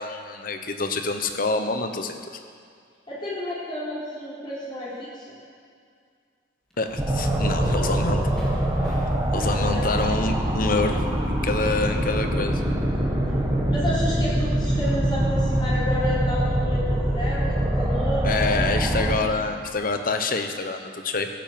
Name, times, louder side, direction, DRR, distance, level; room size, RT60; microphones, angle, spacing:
voice 1, 0.0-2.2 6.8-8.4 8.8-12.6 18.2-21.3, left 3 dB, 45° left, 6 dB, 1.1 m, -27 dB
voice 2, 3.1-5.1 9.3-10.3 13.7-18.7, left 1 dB, 25° left, -9 dB, 4.4 m, -31 dB
sound 1, 6.7-11.5, equal, 5° left, 2.7 m, -42 dB
sound 2, 7.0-19.2, right 1 dB, 20° right, 1.9 m, -24 dB
15.5 x 9.0 x 7.7 m, 2.2 s
head